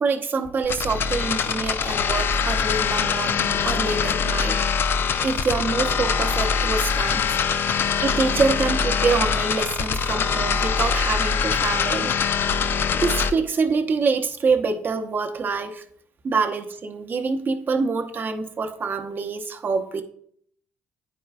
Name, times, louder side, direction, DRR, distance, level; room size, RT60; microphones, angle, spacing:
voice 1, 0.0-4.6 5.2-7.3 8.0-12.1 12.9-15.8 16.2-20.0, right 4 dB, 35° right, 7 dB, 0.7 m, -25 dB
sound 1, 0.6-13.3, left 6 dB, 40° left, 0.4 m, -23 dB
10.0 x 4.6 x 2.3 m, 0.64 s
figure-of-eight pair, 50°, 6 cm